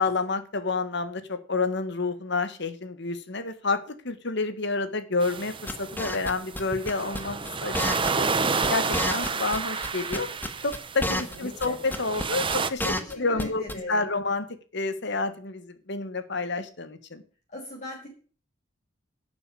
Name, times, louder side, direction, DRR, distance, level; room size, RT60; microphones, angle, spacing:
voice 1, 0.0-8.3 8.7-10.3 10.6-14.5 14.7-17.2, left 3 dB, 60° left, 10 dB, 1.5 m, -29 dB
sound 1, 5.2-12.7, right 4 dB, 25° right, 0.9 m, -30 dB
sound 2, 5.7-6.6 6.9-7.2 7.4-7.5 7.7-8.4 8.6-8.7 8.9-9.9 10.1-11.4 11.6-11.7 11.9-12.2 12.5-13.4 13.7-13.8, left 1 dB, 10° left, 1.3 m, -29 dB
voice 2, 11.3-11.8 13.0-14.1 17.5-18.1, left 1 dB, 40° left, -3 dB, 4.9 m, -40 dB
12.0 x 7.1 x 8.4 m, 0.39 s
head